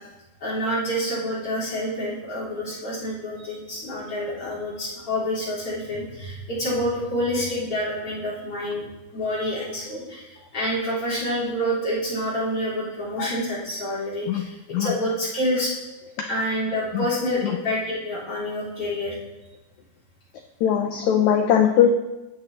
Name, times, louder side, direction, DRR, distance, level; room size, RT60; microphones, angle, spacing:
voice 1, 0.4-8.9 9.1-15.7 16.3-19.2, equal, 40° left, -7 dB, 4.7 m, -27 dB
voice 2, 20.6-21.9, left 9 dB, 80° left, 4 dB, 1.6 m, -20 dB
13.0 x 7.9 x 2.9 m, 1.0 s
omnidirectional pair, 4.0 m